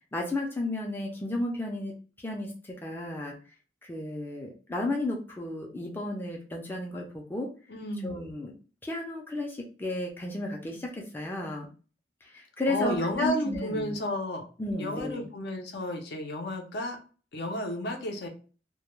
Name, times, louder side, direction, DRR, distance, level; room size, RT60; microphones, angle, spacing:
voice 1, 0.1-1.9 2.2-3.3 3.8-7.5 8.0-8.5 8.8-11.7 12.2-14.0 14.6-15.3, left 1 dB, 10° left, -1 dB, 0.4 m, -33 dB
voice 2, 7.7-8.2 12.7-14.4 14.8-17.0 17.3-18.3, left 1 dB, 65° left, 3 dB, 0.5 m, -32 dB
2.1 x 2.1 x 3.0 m, 0.37 s
head